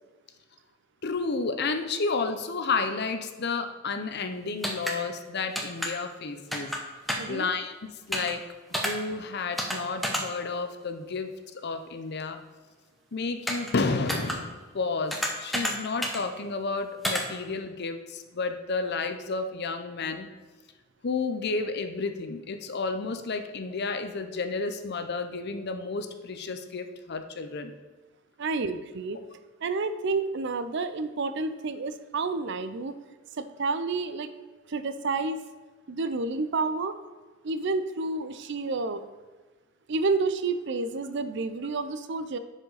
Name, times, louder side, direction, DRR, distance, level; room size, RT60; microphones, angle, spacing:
voice 1, 1.0-6.7 7.3-8.4 8.7-12.4 13.1-20.3 21.0-27.7, left 4 dB, 55° left, 8 dB, 0.7 m, -31 dB
sound 1, 4.6-4.9 5.5-5.9 6.5-6.8 7.1-7.3 8.1-8.3 8.7-8.9 9.6-9.8 10.0-10.2 13.5-13.7 14.1-14.4 15.1-15.7 16.0-16.2 17.0-17.2, equal, ahead, 1.0 m, -29 dB
voice 2, 7.2-7.5 28.4-29.2 29.6-32.9 33.4-34.3 34.7-35.4 35.9-36.9 37.4-39.0 39.9-42.4, right 3 dB, 60° right, 11 dB, 0.5 m, -29 dB
10.5 x 5.0 x 4.0 m, 1.3 s
head